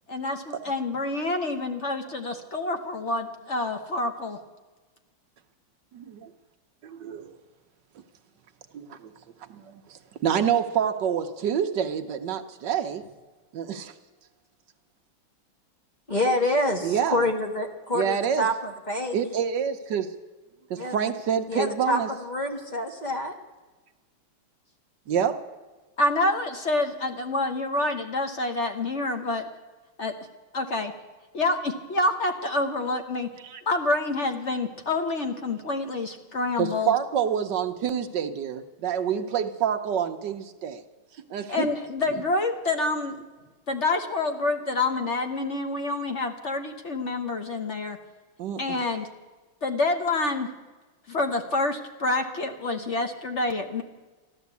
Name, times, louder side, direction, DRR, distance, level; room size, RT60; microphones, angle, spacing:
voice 1, 0.1-4.4 26.0-29.5 30.0-30.2 30.5-30.9 31.3-33.3 33.7-36.9 41.5-43.2 43.7-48.0 48.6-49.1 49.6-50.5 51.1-53.8, left 2 dB, 45° left, 1.0 m, -27 dB
voice 2, 5.9-6.3 6.8-7.4 8.7-9.1 9.5-13.0 13.5-13.9 16.8-17.2 17.9-18.5 19.1-20.1 20.7-22.1 25.1-25.5 33.4-33.6 36.6-40.8 41.3-41.7 48.4-48.9, right 8 dB, 65° right, 1.3 m, -27 dB
voice 3, 16.1-19.2 20.7-21.0 21.5-23.3, left 1 dB, 25° left, 1.3 m, -27 dB
14.5 x 12.0 x 8.2 m
omnidirectional pair, 2.4 m